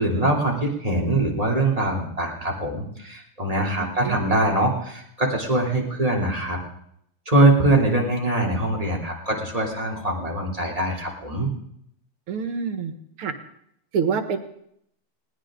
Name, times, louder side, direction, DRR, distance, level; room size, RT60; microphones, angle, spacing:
voice 1, 0.0-6.6 7.3-11.5, right 2 dB, 15° right, -2 dB, 3.2 m, -23 dB
voice 2, 3.8-4.2 12.3-12.9 13.2-13.3 13.9-14.4, right 6 dB, 80° right, 7 dB, 2.4 m, -26 dB
20.5 x 18.5 x 3.8 m, 0.73 s
omnidirectional pair, 2.4 m